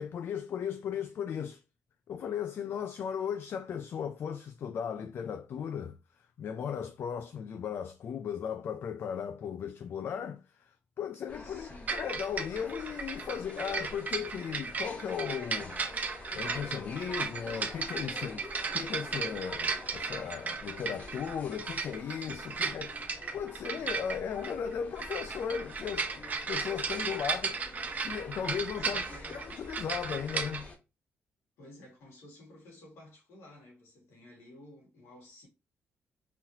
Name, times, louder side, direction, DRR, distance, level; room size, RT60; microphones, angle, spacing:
voice 1, 0.0-1.6 2.1-6.0 6.4-15.8 16.3-18.5 18.7-27.6 28.0-29.0 29.3-30.7, left 7 dB, 55° left, 0.4 m, -36 dB
sound 1, 11.3-30.8, left 2 dB, 35° left, 1.1 m, -47 dB
voice 2, 11.4-12.0 28.8-29.5 31.6-35.5, left 1 dB, 85° left, 2.1 m, -53 dB
sound 2, 11.9-30.6, right 5 dB, 35° right, 0.7 m, -36 dB
4.0 x 2.9 x 2.8 m
cardioid pair, 110°, 5 cm